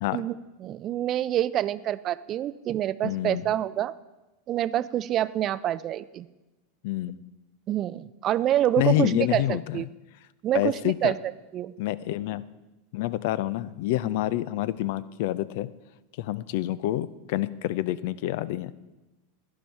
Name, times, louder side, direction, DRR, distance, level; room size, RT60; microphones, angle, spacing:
voice 1, 0.1-3.9 4.5-6.3 7.7-9.9 10.4-11.2 11.5-11.7, right 12 dB, 40° right, 18 dB, 0.4 m, -27 dB
voice 2, 3.0-3.5 6.8-7.2 8.8-9.8 10.5-11.1 11.8-12.4 12.9-15.7 16.2-18.7, left 15 dB, 65° left, 17 dB, 0.4 m, -27 dB
11.0 x 10.5 x 4.5 m, 1.1 s
hypercardioid pair, 95°, 0 cm